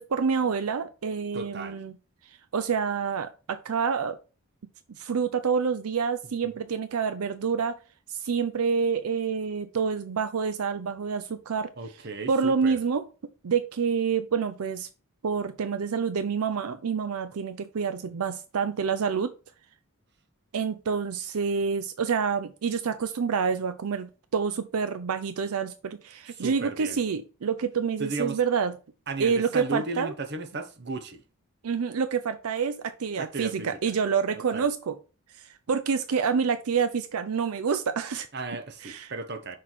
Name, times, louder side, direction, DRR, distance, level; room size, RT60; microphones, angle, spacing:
voice 1, 0.1-1.9 2.5-4.2 5.0-7.8 8.1-11.7 12.3-13.0 13.4-14.9 15.2-19.3 20.5-28.7 29.2-30.1 31.6-34.9 35.7-38.3 38.8-39.1, right 6 dB, 80° right, 0.5 m, -27 dB
voice 2, 1.3-1.8 6.4-6.7 11.8-12.8 26.3-27.0 28.0-28.4 29.1-31.2 33.2-33.9 34.3-34.7 38.3-39.6, right 3 dB, 50° right, 0.9 m, -35 dB
6.0 x 4.6 x 4.4 m
head